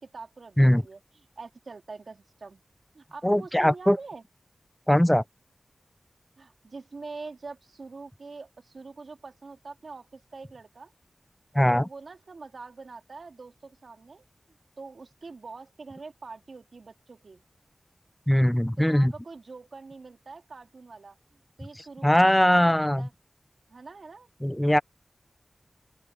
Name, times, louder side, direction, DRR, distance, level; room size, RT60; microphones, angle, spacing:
voice 1, 0.0-2.6 2.9-4.2 6.4-10.9 11.6-17.4 18.8-23.1 23.7-24.3, right 4 dB, 75° right, 2.7 m, -44 dB
voice 2, 3.2-4.0 4.9-5.2 11.5-11.9 18.3-19.1 22.0-23.1 24.4-24.8, equal, 10° left, 0.6 m, -20 dB
open air
cardioid pair, 50°, 0 cm